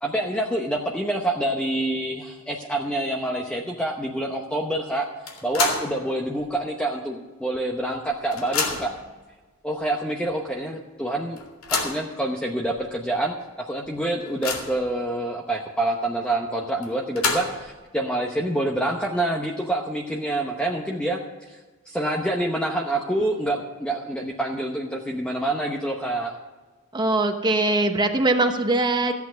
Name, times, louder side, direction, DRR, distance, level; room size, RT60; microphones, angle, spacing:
voice 1, 0.0-5.1 5.4-8.9 9.6-11.4 11.7-21.6 21.9-26.4, right 1 dB, 5° left, 0 dB, 0.8 m, -27 dB
sound 1, 5.3-6.0 6.4-6.5 7.5-7.6 7.9-9.0 9.8-9.9 10.3-10.4 11.4-12.1 12.8-12.9 13.3-13.4 13.8-14.9 16.8-17.7, left 4 dB, 75° left, 2.3 m, -28 dB
voice 2, 26.9-29.1, right 2 dB, 20° right, 5 dB, 1.0 m, -21 dB
14.5 x 8.3 x 6.3 m, 1.3 s
head